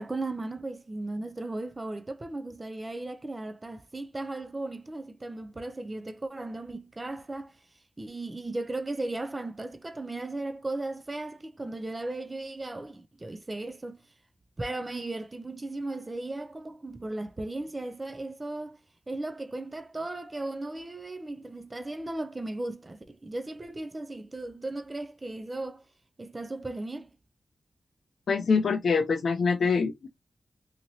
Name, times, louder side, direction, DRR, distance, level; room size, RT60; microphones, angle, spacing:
voice 1, 0.0-7.6 8.0-14.0 14.6-18.8 19.1-25.8 26.2-27.1, right 2 dB, 30° right, 0.4 m, -36 dB
voice 2, 28.3-30.1, left 5 dB, 80° left, 0.4 m, -25 dB
2.9 x 2.8 x 2.6 m
cardioid pair, 60°, 0 cm